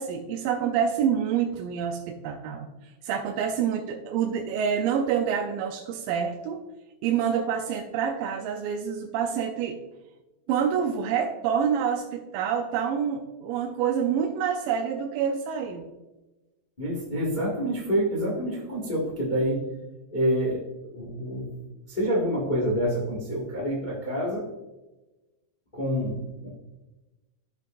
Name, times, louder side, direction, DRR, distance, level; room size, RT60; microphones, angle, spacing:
voice 1, 0.0-2.7 3.0-6.6 7.0-9.8 10.5-15.9, right 7 dB, 85° right, 3 dB, 2.3 m, -27 dB
voice 2, 16.8-19.7 20.1-21.6 21.9-24.5 25.7-26.5, equal, 35° left, -4 dB, 0.7 m, -27 dB
14.0 x 5.3 x 2.5 m, 1.1 s
omnidirectional pair, 4.0 m